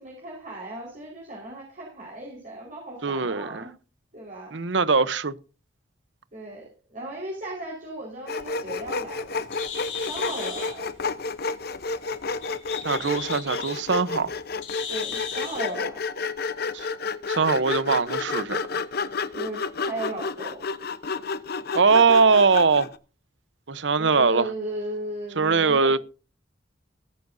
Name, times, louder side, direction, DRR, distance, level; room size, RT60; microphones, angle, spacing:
voice 1, 0.0-3.7 4.1-4.6 6.3-9.5 10.1-10.9 14.9-16.0 19.3-20.6 24.0-25.9, right 1 dB, 45° right, 4.6 m, -36 dB
voice 2, 3.0-3.7 4.5-5.3 12.8-14.3 16.7-16.9 17.3-18.6 21.7-22.9 23.7-24.5 25.4-26.0, right 4 dB, 70° right, 0.9 m, -21 dB
Sawing, 8.3-23.0, left 4 dB, 55° left, 0.8 m, -31 dB
Bird, 8.5-15.7, left 7 dB, 80° left, 3.4 m, -38 dB
20.0 x 9.7 x 2.7 m
head